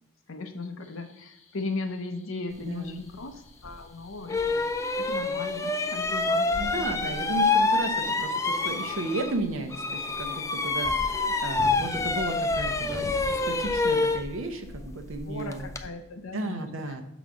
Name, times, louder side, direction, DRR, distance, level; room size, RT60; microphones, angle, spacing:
voice 1, 0.3-4.7 5.0-7.1 15.3-17.0, left 3 dB, 65° left, 6 dB, 0.7 m, -37 dB
sound 1, 0.8-13.4, left 1 dB, 30° left, 0.9 m, -50 dB
voice 2, 2.6-3.0 6.6-13.1 13.5-15.7 16.3-17.0, right 2 dB, 60° right, 6 dB, 0.8 m, -34 dB
sound 2, 3.6-3.8 4.3-9.4 9.7-15.9, left 3 dB, 15° left, 0.3 m, -27 dB
6.3 x 4.0 x 6.0 m, 0.86 s
head